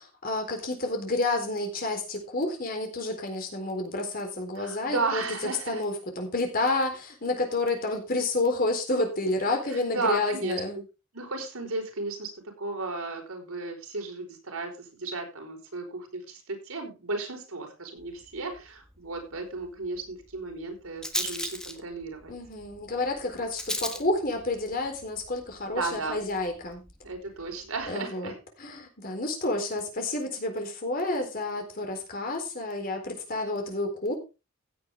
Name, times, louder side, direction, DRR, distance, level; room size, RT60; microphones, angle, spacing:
voice 1, 0.0-5.2 5.7-10.8 22.3-26.8 27.9-28.3 28.6-34.1, left 2 dB, 40° left, 4 dB, 4.0 m, -30 dB
voice 2, 4.6-5.8 9.7-10.8 11.1-22.3 25.7-26.2 27.0-28.3, right 3 dB, 85° right, 4 dB, 4.7 m, -34 dB
Rattle, 18.0-27.9, left 1 dB, 5° left, 1.4 m, -40 dB
16.0 x 8.3 x 3.6 m, 0.29 s
head